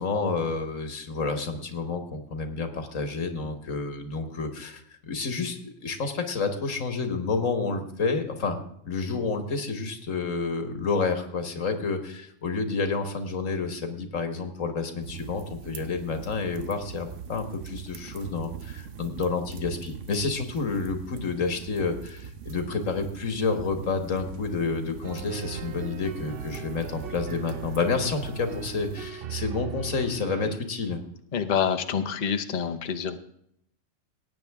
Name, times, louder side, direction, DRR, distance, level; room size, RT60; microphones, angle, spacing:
voice 1, 0.0-31.0, left 4 dB, 90° left, 7 dB, 1.8 m, -29 dB
sound 1, 15.0-29.1, right 7 dB, 70° right, 1.3 m, -42 dB
sound 2, 25.0-30.6, right 7 dB, 55° right, 0.7 m, -38 dB
voice 2, 31.3-33.2, left 7 dB, 40° left, 7 dB, 0.9 m, -27 dB
18.0 x 9.1 x 3.6 m, 0.73 s
omnidirectional pair, 1.3 m